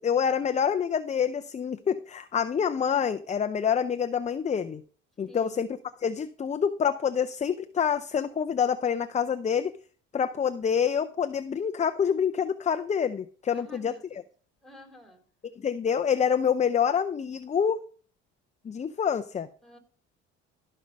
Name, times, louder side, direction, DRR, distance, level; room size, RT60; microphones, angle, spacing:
voice 1, 0.0-4.8 5.2-9.8 10.1-14.2 15.6-17.8 18.6-19.5, left 7 dB, 25° left, 10 dB, 0.5 m, -27 dB
voice 2, 5.3-5.6 13.5-14.2 14.6-15.2 19.6-19.8, left 1 dB, ahead, 6 dB, 2.9 m, -50 dB
14.5 x 5.5 x 5.2 m, 0.43 s
supercardioid pair, 90°, 29 cm